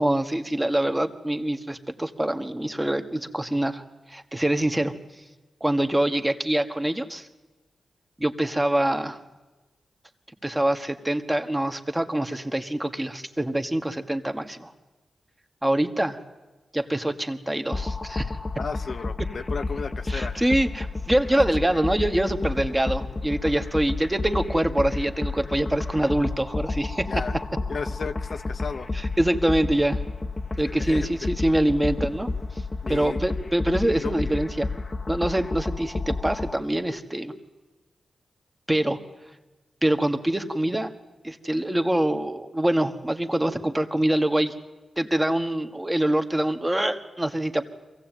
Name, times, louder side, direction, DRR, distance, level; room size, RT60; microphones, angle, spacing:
voice 1, 0.0-3.8 4.1-4.9 5.6-7.3 8.2-9.2 10.4-14.7 15.6-16.2 16.7-18.3 20.1-27.2 28.9-30.0 30.6-32.3 32.9-34.7 35.1-37.3 38.7-39.0 39.8-40.9 41.2-44.5 45.0-47.6, right 1 dB, 15° right, 7 dB, 1.7 m, -25 dB
sound 1, 17.7-36.5, left 3 dB, 35° left, 0.8 m, -31 dB
voice 2, 18.6-20.5 21.3-21.4 21.7-21.8 27.1-27.3 27.7-28.9 30.6-31.3 32.8-33.2 34.0-34.2, left 5 dB, 65° left, 8 dB, 0.8 m, -34 dB
23.0 x 16.0 x 9.2 m, 1.2 s
cardioid pair, 50°, 0 cm